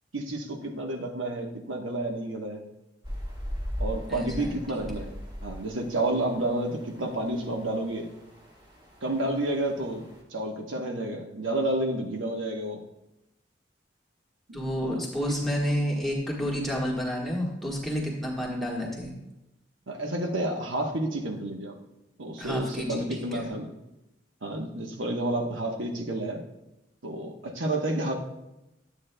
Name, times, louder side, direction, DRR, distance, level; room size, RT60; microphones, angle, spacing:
voice 1, 0.1-2.6 3.8-5.1 5.4-8.1 9.0-10.1 10.3-12.8 14.5-14.6 14.8-15.4 19.9-21.8 22.2-23.7 24.4-26.4 27.0-28.1, right 1 dB, 90° right, 2 dB, 1.1 m, -30 dB
sound 1, 3.0-10.2, equal, 20° right, 1.5 m, -39 dB
voice 2, 4.1-4.6 14.5-19.1 22.4-23.5, equal, ahead, -3 dB, 1.4 m, -30 dB
12.0 x 8.2 x 2.2 m, 0.92 s
head